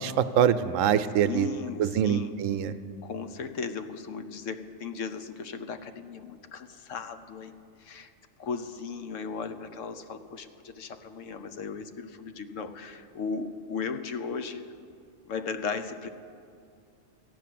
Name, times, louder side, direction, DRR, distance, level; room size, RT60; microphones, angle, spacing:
voice 1, 0.0-1.5 1.8-2.7, right 9 dB, 85° right, 11 dB, 1.0 m, -24 dB
voice 2, 1.2-2.4 3.0-7.5 7.8-8.1 8.4-14.7 15.2-16.1, left 5 dB, 75° left, 10 dB, 1.1 m, -36 dB
14.5 x 9.3 x 7.6 m, 2.4 s
omnidirectional pair, 1.3 m